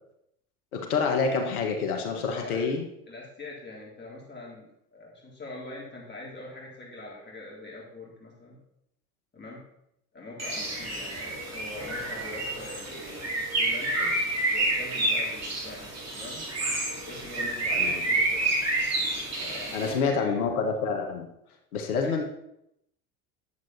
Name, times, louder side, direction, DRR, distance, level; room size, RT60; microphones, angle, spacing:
voice 1, 0.7-2.9 17.8-18.0 19.7-21.3 21.7-22.2, left 5 dB, 75° left, 4 dB, 1.6 m, -27 dB
voice 2, 2.1-2.7 3.1-8.6 9.3-9.6 10.1-16.4 17.0-18.6 19.4-20.4 22.0-22.2, left 2 dB, 25° left, -4 dB, 3.9 m, -43 dB
Bird, 10.4-20.0, right 2 dB, 35° right, 3.6 m, -29 dB
10.5 x 7.8 x 4.3 m, 0.78 s
hypercardioid pair, 70°, 44 cm